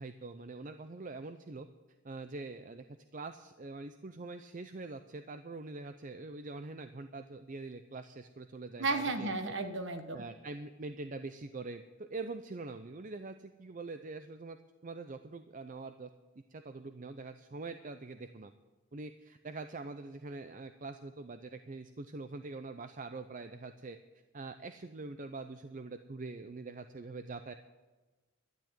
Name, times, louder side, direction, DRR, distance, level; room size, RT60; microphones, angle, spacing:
voice 1, 0.0-1.7 2.0-2.8 3.1-9.5 10.1-14.6 14.8-16.1 16.5-18.5 18.9-24.0 24.3-27.5, right 3 dB, 40° right, 9 dB, 0.5 m, -44 dB
voice 2, 8.8-10.2, right 3 dB, 55° right, 8 dB, 1.4 m, -33 dB
12.0 x 10.0 x 9.0 m, 1.2 s
head